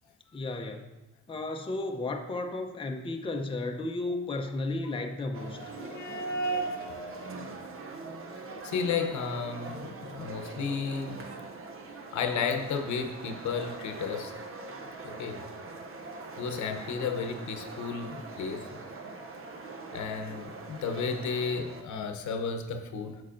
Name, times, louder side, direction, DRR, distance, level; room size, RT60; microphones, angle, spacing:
voice 1, 0.3-0.9 1.3-5.6, left 2 dB, 15° left, 3 dB, 0.6 m, -33 dB
sound 1, 5.3-21.8, right 3 dB, 45° right, 0.7 m, -42 dB
voice 2, 5.6-6.9 8.6-11.2 12.1-14.3 15.0-15.4 16.4-18.7 19.9-23.2, left 4 dB, 70° left, 5 dB, 0.9 m, -33 dB
8.3 x 6.3 x 2.6 m, 1.1 s
cardioid pair, 90°, 30 cm